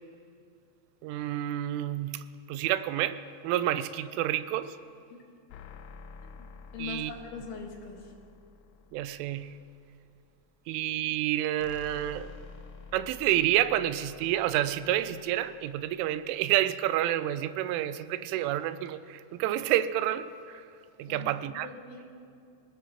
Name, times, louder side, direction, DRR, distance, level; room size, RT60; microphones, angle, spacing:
voice 1, 1.0-4.8 6.8-7.1 8.9-9.6 10.7-12.3 12.9-20.7 21.0-21.7, right 13 dB, 85° right, 3.0 m, -29 dB
sound 1, 5.5-10.0 11.6-16.4, left 5 dB, 90° left, 3.2 m, -50 dB
voice 2, 6.3-8.1 21.1-22.1, left 5 dB, 75° left, 4.1 m, -42 dB
25.5 x 18.5 x 3.0 m
omnidirectional pair, 5.6 m